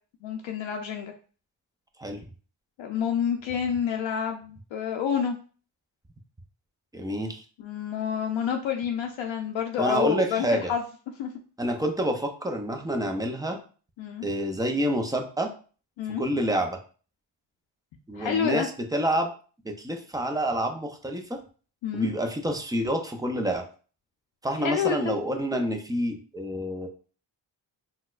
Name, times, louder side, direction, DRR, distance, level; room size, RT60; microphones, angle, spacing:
voice 1, 0.2-1.1 2.8-5.3 7.6-10.8 11.2-11.3 14.0-14.3 16.0-16.2 18.1-18.7 21.8-22.1 24.6-25.1, left 8 dB, 80° left, 2 dB, 0.5 m, -28 dB
voice 2, 6.9-7.4 9.8-10.7 11.6-13.6 14.2-15.5 16.2-16.8 18.1-19.3 19.6-21.4 21.9-23.6 24.4-26.9, right 1 dB, 10° right, 4 dB, 0.4 m, -28 dB
4.0 x 2.2 x 2.4 m, 0.39 s
cardioid pair, 75°, 45 cm